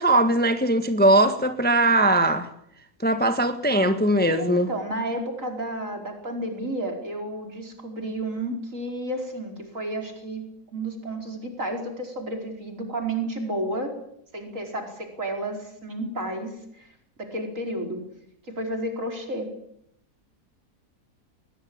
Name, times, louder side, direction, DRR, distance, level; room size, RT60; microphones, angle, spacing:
voice 1, 0.0-2.5 3.0-4.7, right 1 dB, 5° left, 1.4 m, -20 dB
voice 2, 4.3-10.4 10.7-13.9 14.3-16.9 17.2-18.0 18.5-19.5, right 1 dB, 50° right, 5.2 m, -31 dB
21.0 x 21.0 x 8.8 m
omnidirectional pair, 1.7 m